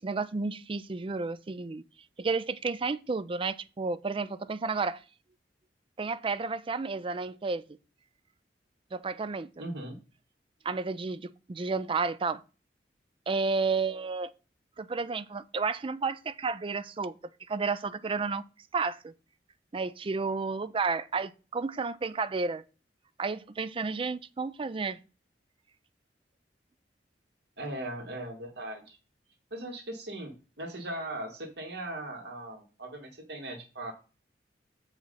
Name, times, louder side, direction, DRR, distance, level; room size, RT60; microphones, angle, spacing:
voice 1, 0.0-1.8 2.2-5.0 6.0-7.6 8.9-9.5 10.6-12.4 13.3-14.3 14.8-17.1 17.5-18.4 18.7-19.1 19.7-22.6 23.2-25.0, right 4 dB, 30° right, 0.4 m, -31 dB
voice 2, 9.6-10.0 27.6-29.0 29.5-33.9, right 1 dB, 65° right, 2.1 m, -39 dB
7.1 x 5.1 x 5.5 m
head